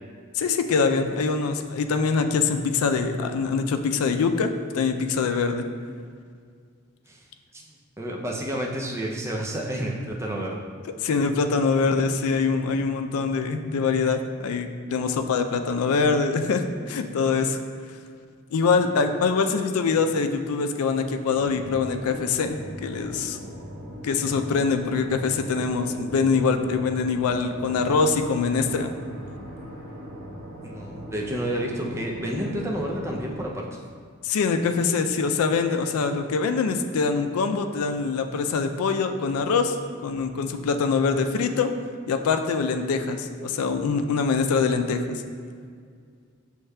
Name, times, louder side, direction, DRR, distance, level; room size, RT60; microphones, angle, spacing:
voice 1, 0.3-5.7 11.0-17.6 18.5-23.4 24.0-28.9 34.2-39.8 40.0-41.7 42.1-45.2, left 4 dB, 90° left, 7 dB, 0.3 m, -24 dB
voice 2, 8.0-10.6 30.6-33.7, right 1 dB, 10° right, -1 dB, 0.4 m, -30 dB
sound 1, 21.4-33.4, equal, 45° right, 0.7 m, -40 dB
6.3 x 3.2 x 2.2 m, 2.1 s
head